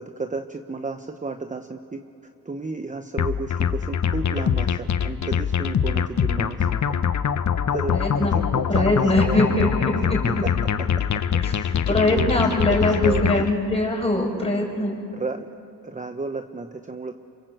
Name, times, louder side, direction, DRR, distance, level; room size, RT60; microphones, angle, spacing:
voice 1, 0.0-2.0 2.4-6.8 7.7-9.5 10.4-10.5 11.4-13.5 15.1-15.5 15.8-17.1, right 3 dB, 20° right, 7 dB, 1.0 m, -32 dB
sound 1, 3.2-13.5, left 8 dB, 50° left, 1.1 m, -23 dB
voice 2, 7.9-8.3 8.7-10.4 11.4-15.0, left 1 dB, 15° left, -1 dB, 6.7 m, -22 dB
27.5 x 25.0 x 7.9 m, 2.7 s
cardioid pair, 80°, 38 cm